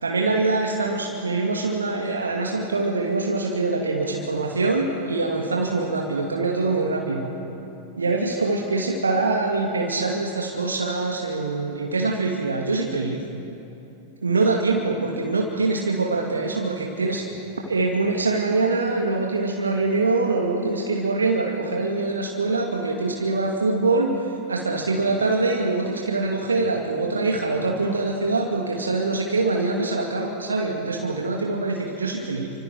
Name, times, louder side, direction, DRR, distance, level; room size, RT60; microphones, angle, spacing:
voice 1, 0.0-7.3 8.0-13.2 14.2-17.3 17.7-32.5, right 3 dB, 75° right, 0 dB, 2.1 m, -24 dB
29.5 x 25.0 x 4.6 m, 2.9 s
figure-of-eight pair, 90°, 0 cm